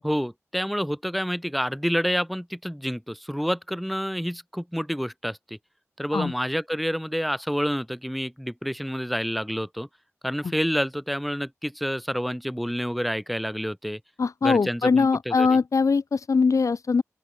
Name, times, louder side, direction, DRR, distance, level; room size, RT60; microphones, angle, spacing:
voice 1, 0.0-5.6 6.0-9.9 10.2-14.0 14.4-15.6, equal, ahead, 2.9 m, -28 dB
voice 2, 14.2-17.0, left 4 dB, 80° left, 2.3 m, -21 dB
open air
wide cardioid pair, 80°, 5 cm